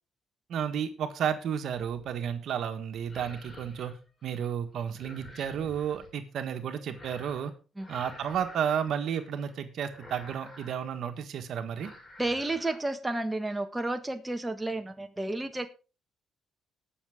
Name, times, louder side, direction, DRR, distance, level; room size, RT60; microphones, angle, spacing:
voice 1, 0.5-3.9 4.2-7.5 7.9-11.9, right 8 dB, 70° right, 7 dB, 1.4 m, -32 dB
sound 1, 1.7-2.1 2.9-4.5 4.8-6.1 6.9-7.5 7.8-9.6 9.9-10.9 11.2-11.5 11.7-12.8 13.2-13.6, left 2 dB, 35° left, 4.9 m, -50 dB
voice 2, 12.2-15.7, right 2 dB, 10° right, 6 dB, 1.5 m, -31 dB
19.0 x 6.7 x 3.7 m, 0.33 s
cardioid pair, 90°, 0 cm